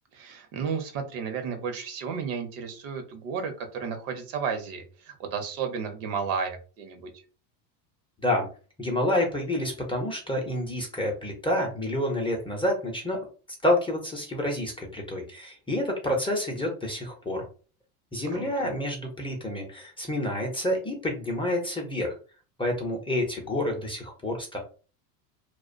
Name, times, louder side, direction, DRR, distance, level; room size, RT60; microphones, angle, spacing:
voice 1, 0.1-7.1 18.2-18.7, right 6 dB, 70° right, 6 dB, 0.9 m, -33 dB
voice 2, 8.8-13.3 13.6-17.4 18.1-22.1 22.6-24.6, left 1 dB, 10° left, 0 dB, 0.5 m, -28 dB
2.4 x 2.1 x 2.4 m, 0.37 s
supercardioid pair, 110°, 47 cm